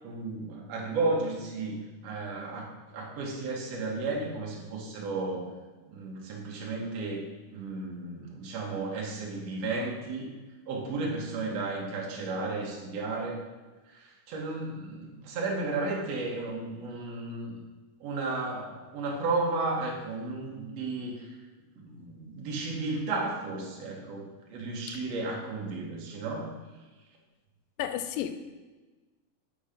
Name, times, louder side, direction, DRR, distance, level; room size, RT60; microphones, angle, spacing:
voice 1, 0.0-5.5 5.9-7.2 7.5-10.3 10.7-13.4 13.9-17.6 18.0-21.4 21.8-26.5, right 3 dB, 60° right, -2 dB, 2.0 m, -33 dB
voice 2, 27.8-28.4, left 10 dB, 85° left, 9 dB, 2.3 m, -32 dB
7.2 x 4.7 x 5.0 m, 1.2 s
omnidirectional pair, 3.9 m